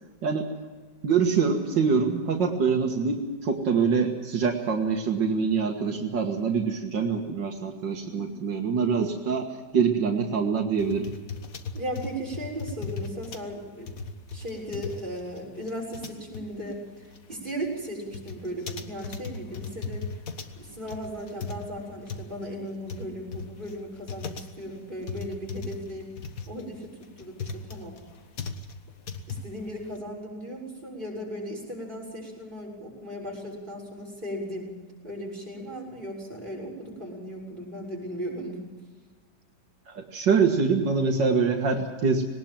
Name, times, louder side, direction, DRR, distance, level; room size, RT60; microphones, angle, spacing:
voice 1, 1.0-9.5 9.7-11.1 39.9-42.3, right 5 dB, 80° right, 3 dB, 2.2 m, -25 dB
sound 1, 10.8-30.0, left 4 dB, 55° left, 1.7 m, -38 dB
voice 2, 11.7-13.9 14.3-20.1 20.6-26.1 26.5-28.0 29.3-34.7 35.0-38.6, equal, 25° right, -2 dB, 7.0 m, -36 dB
20.5 x 19.0 x 7.4 m, 1.4 s
omnidirectional pair, 1.9 m